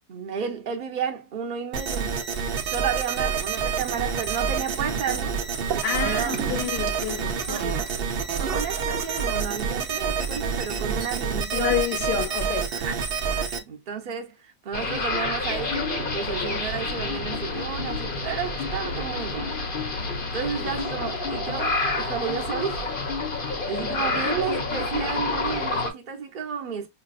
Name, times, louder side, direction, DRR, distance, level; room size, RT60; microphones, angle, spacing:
voice 1, 0.1-2.1 2.6-5.4 6.0-6.3 7.5-7.7 8.5-11.8 12.7-13.0 13.2-19.5 20.3-22.9 23.3-26.9, right 7 dB, 45° right, 0.6 m, -32 dB
sound 1, 1.7-13.6, right 6 dB, 90° right, 0.5 m, -28 dB
Gurgling / Toilet flush, 5.7-9.7, right 8 dB, 75° right, 1.2 m, -36 dB
voice 2, 5.8-7.7 11.5-12.7 20.6-20.8, left 10 dB, 70° left, 1.4 m, -29 dB
sound 2, 14.7-25.9, left 3 dB, 40° left, 0.8 m, -28 dB
5.7 x 2.3 x 2.4 m
omnidirectional pair, 1.9 m